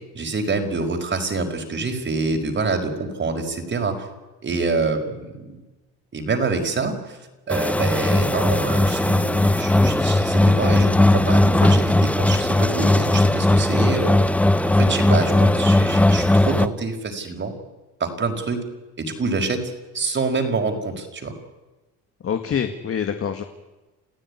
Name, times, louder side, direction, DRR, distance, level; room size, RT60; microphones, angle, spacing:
voice 1, 0.1-4.1 4.4-5.6 6.1-7.2 7.5-14.1 14.6-17.5 18.0-18.6 19.0-19.6 19.9-21.3, right 3 dB, 40° right, 4 dB, 5.3 m, -26 dB
sound 1, 7.5-16.7, left 1 dB, 5° left, 1.1 m, -18 dB
voice 2, 22.2-23.4, left 8 dB, 50° left, 7 dB, 2.1 m, -25 dB
29.0 x 15.5 x 9.9 m, 1.1 s
supercardioid pair, 80°, 29 cm